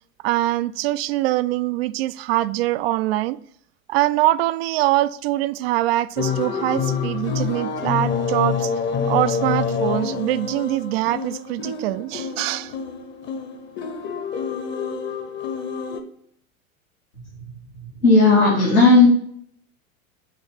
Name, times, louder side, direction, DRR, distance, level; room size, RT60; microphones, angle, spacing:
voice 1, 0.2-3.4 3.9-8.7 9.1-12.7, right 16 dB, 50° right, 0.4 m, -23 dB
sound 1, 6.2-16.0, left 5 dB, 25° left, 0.9 m, -27 dB
voice 2, 18.0-19.1, left 3 dB, 85° left, 2.0 m, -13 dB
7.8 x 3.2 x 4.5 m
figure-of-eight pair, 85°, 41 cm